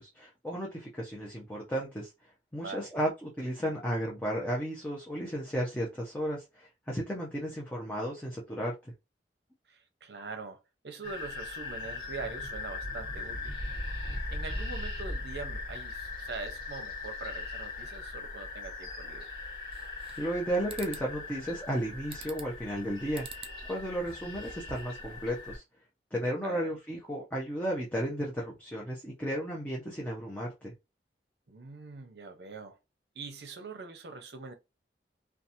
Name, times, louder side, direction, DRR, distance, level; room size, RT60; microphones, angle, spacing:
voice 1, 0.0-2.1 2.5-8.7 20.2-25.6 26.1-30.7, equal, 10° left, 0.6 m, -34 dB
voice 2, 2.6-2.9 9.7-10.6 10.8-13.6 14.3-19.3 26.4-26.7 31.5-32.8 33.1-34.5, right 4 dB, 65° right, 0.6 m, -43 dB
sound 1, 11.0-25.6, left 2 dB, 25° left, 1.4 m, -39 dB
sound 2, 19.7-20.4 20.7-21.1 22.1-22.6 23.1-23.6 24.0-25.0, right 6 dB, 30° right, 0.3 m, -46 dB
2.8 x 2.3 x 2.6 m
head